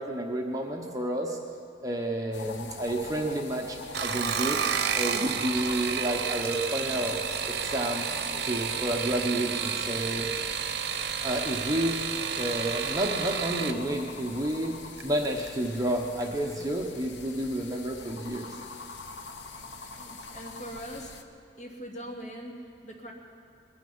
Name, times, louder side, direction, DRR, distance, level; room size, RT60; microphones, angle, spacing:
voice 1, 0.0-1.4 1.8-4.6 4.9-7.2 7.4-10.3 11.2-12.0 12.4-18.5, right 1 dB, 20° right, 1 dB, 1.0 m, -30 dB
sound 1, 2.3-21.2, left 4 dB, 85° left, 0.9 m, -44 dB
sound 2, 3.8-13.8 15.0-15.5 15.9-16.3 16.6-16.7, right 7 dB, 65° right, 0.8 m, -31 dB
voice 2, 19.9-21.2 21.6-23.1, equal, 40° left, -1 dB, 2.2 m, -42 dB
21.5 x 11.0 x 5.6 m, 2.7 s
head